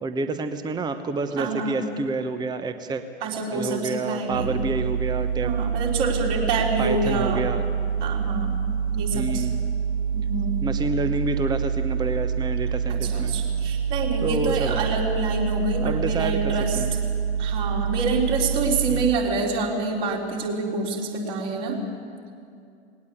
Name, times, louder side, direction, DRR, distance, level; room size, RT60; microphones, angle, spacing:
voice 1, 0.0-3.0 3.5-5.5 6.8-7.6 9.1-9.6 10.6-13.4 14.2-14.9 15.8-16.4 16.7-16.9 18.9-19.1, right 3 dB, 10° right, 10 dB, 1.0 m, -28 dB
voice 2, 1.4-1.8 3.2-4.5 5.4-7.4 8.0-8.6 8.9-9.4 10.1-10.6 12.9-17.0 17.4-21.8, right 3 dB, 45° right, -1 dB, 4.1 m, -27 dB
sound 1, 4.3-19.1, right 7 dB, 70° right, 3.2 m, -26 dB
19.5 x 18.0 x 8.5 m, 2.4 s
figure-of-eight pair, 95°, 33 cm